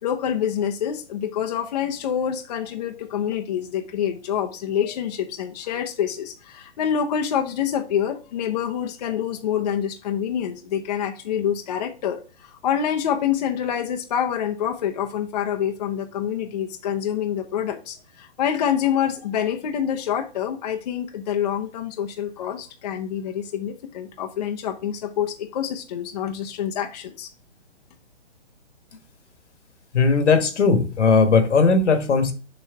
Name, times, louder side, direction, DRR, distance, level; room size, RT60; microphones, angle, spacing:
voice 1, 0.0-27.3, left 9 dB, 35° left, 0.7 m, -26 dB
voice 2, 29.9-32.3, left 4 dB, 85° left, 1.4 m, -18 dB
7.1 x 3.2 x 4.6 m
hypercardioid pair, 155°, 34 cm